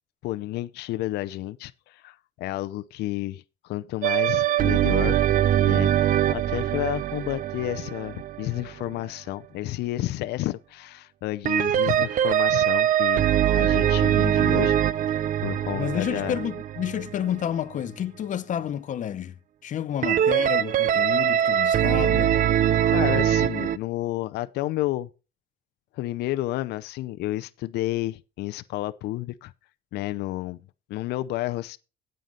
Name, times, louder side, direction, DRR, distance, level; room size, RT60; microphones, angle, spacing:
voice 1, 0.2-5.2 5.6-5.9 6.3-13.3 13.5-14.8 15.2-16.4 22.9-25.1 25.9-29.5 29.9-30.6 30.9-31.8, left 16 dB, 80° left, 0.6 m, -31 dB
sound 1, 4.0-9.0 11.4-17.5 20.0-23.8, right 10 dB, 50° right, 0.6 m, -22 dB
voice 2, 15.7-19.3 19.6-22.4, left 10 dB, 50° left, 0.8 m, -30 dB
9.3 x 7.8 x 5.2 m
cardioid pair, 110°, 17 cm